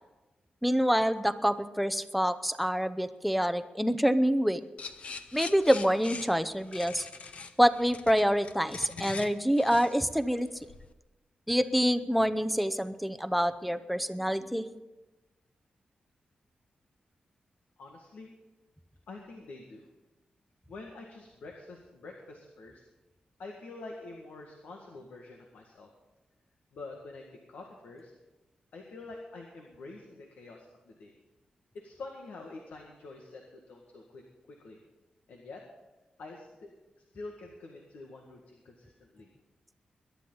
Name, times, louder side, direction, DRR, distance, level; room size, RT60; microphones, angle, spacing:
voice 1, 0.6-4.6 5.3-7.1 7.6-10.5 11.5-14.7, equal, ahead, 11 dB, 0.7 m, -26 dB
sound 1, 4.8-10.9, left 4 dB, 50° left, 0.9 m, -43 dB
voice 2, 17.8-18.3 19.1-19.9 20.7-22.8 23.4-25.9 26.7-28.1 28.7-31.1 31.7-34.2 34.5-34.8 35.3-35.6 36.2-36.7 37.1-39.3, left 3 dB, 90° left, 1 dB, 1.8 m, -46 dB
21.5 x 11.5 x 4.0 m, 1.1 s
wide cardioid pair, 120°, 3 cm